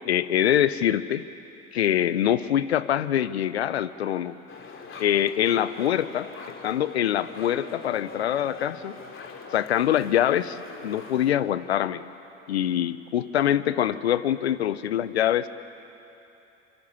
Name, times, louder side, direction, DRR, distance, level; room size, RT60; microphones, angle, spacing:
voice 1, 0.0-1.2 1.7-4.4 5.0-6.3 6.6-9.0 9.5-10.6 10.8-12.0 12.5-15.5, left 11 dB, 90° left, 16 dB, 0.7 m, -24 dB
sound 1, 4.5-11.3, left 4 dB, 40° left, 3.2 m, -43 dB
27.5 x 25.5 x 7.0 m, 2.9 s
hypercardioid pair, 65°, 31 cm